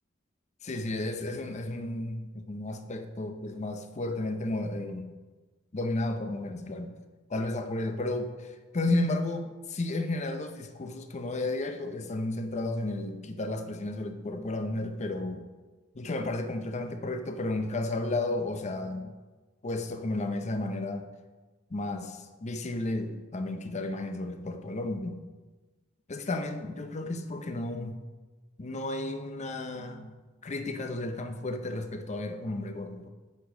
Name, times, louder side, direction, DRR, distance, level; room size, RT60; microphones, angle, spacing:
voice 1, 0.6-5.1 5.7-6.9 7.3-15.5 15.9-19.1 19.6-21.1 21.7-25.2 26.1-28.0 28.6-30.2 30.4-33.1, left 2 dB, 35° left, 7 dB, 0.6 m, -33 dB
8.3 x 5.1 x 3.7 m, 1.2 s
head